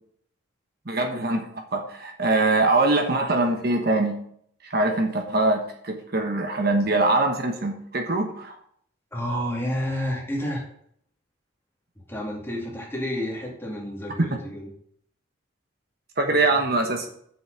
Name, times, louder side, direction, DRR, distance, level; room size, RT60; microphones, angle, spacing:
voice 1, 0.8-1.5 1.7-4.2 4.6-8.6 16.2-17.1, right 2 dB, 50° right, 4 dB, 1.2 m, -23 dB
voice 2, 9.1-10.7 12.1-14.7 16.7-17.0, equal, 10° left, -2 dB, 2.4 m, -30 dB
7.9 x 6.3 x 6.5 m, 0.64 s
head